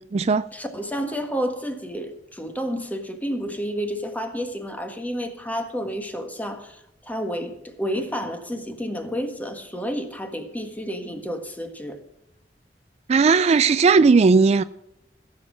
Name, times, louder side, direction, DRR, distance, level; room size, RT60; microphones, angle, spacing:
voice 1, 0.0-0.5 13.1-14.6, right 4 dB, 40° right, 0.3 m, -17 dB
voice 2, 0.5-12.0, equal, 10° left, 1.6 m, -30 dB
15.5 x 7.5 x 6.2 m
head